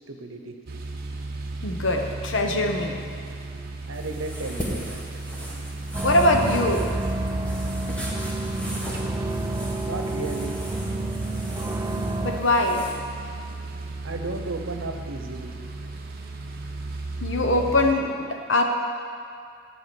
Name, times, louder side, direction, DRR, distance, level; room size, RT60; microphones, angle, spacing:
voice 1, 0.1-0.5 3.9-5.0 9.8-10.6 14.0-15.5, right 2 dB, 85° right, 5 dB, 0.9 m, -34 dB
sound 1, 0.7-17.9, right 2 dB, 50° right, 0.8 m, -35 dB
voice 2, 1.6-2.9 6.0-6.9 12.2-12.9 17.2-18.7, left 1 dB, 70° left, 3 dB, 1.0 m, -22 dB
sound 2, 3.9-12.9, equal, 5° left, 1.4 m, -39 dB
sound 3, 5.9-12.4, right 2 dB, 15° right, 0.4 m, -29 dB
9.8 x 4.9 x 7.7 m, 2.4 s
head